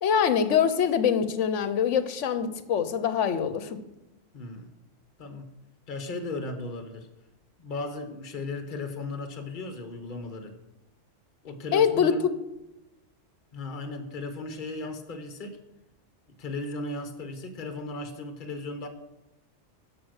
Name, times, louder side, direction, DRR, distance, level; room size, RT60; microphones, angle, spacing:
voice 1, 0.0-3.8 11.7-12.1, left 7 dB, 70° left, 12 dB, 1.1 m, -24 dB
voice 2, 4.3-4.7 5.2-5.5 5.9-7.1 7.6-10.5 11.4-12.2 13.5-15.6 16.4-18.9, left 2 dB, 40° left, 7 dB, 1.2 m, -36 dB
12.5 x 5.1 x 6.4 m, 0.94 s
omnidirectional pair, 1.3 m